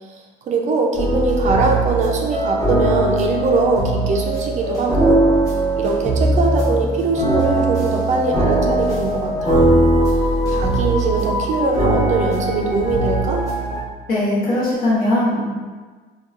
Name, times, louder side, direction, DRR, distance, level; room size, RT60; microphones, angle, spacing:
voice 1, 0.4-5.2 5.8-9.7 10.5-13.4, right 3 dB, 45° right, 1 dB, 0.4 m, -21 dB
sound 1, 0.9-13.8, right 1 dB, 20° left, 0.9 m, -20 dB
voice 2, 14.1-15.5, left 1 dB, 60° left, -7 dB, 1.0 m, -19 dB
2.8 x 2.2 x 2.4 m, 1.4 s
cardioid pair, 110°, 17 cm